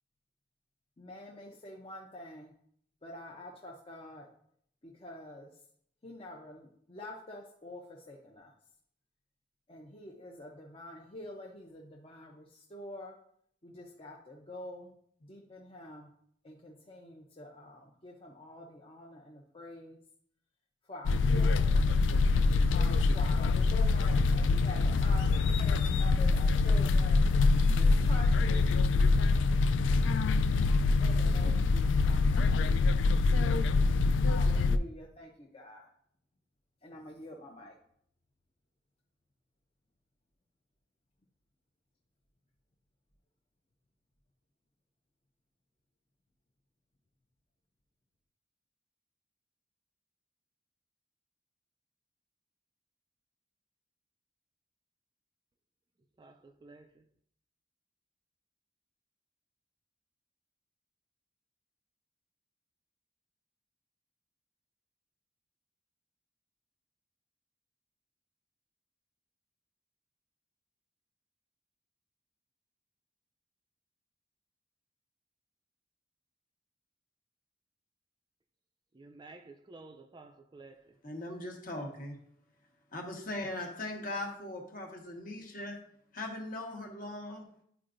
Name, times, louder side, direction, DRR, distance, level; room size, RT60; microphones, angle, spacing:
voice 1, 1.0-2.5 3.0-4.3 4.8-5.5 6.0-8.5 9.7-13.1 13.6-14.9 15.2-16.1 16.4-20.0 20.9-21.9 22.7-29.3 31.0-32.9 34.3-35.9 36.8-37.8, left 1 dB, 30° left, 0.7 m, -47 dB
sound 1, 21.1-34.8, left 3 dB, 85° left, 0.3 m, -25 dB
voice 2, 56.2-57.0 78.9-80.9, right 3 dB, 25° right, 0.3 m, -52 dB
voice 3, 81.0-82.1 82.9-85.7 86.1-87.4, left 1 dB, 50° left, 1.3 m, -39 dB
10.0 x 4.7 x 2.5 m
head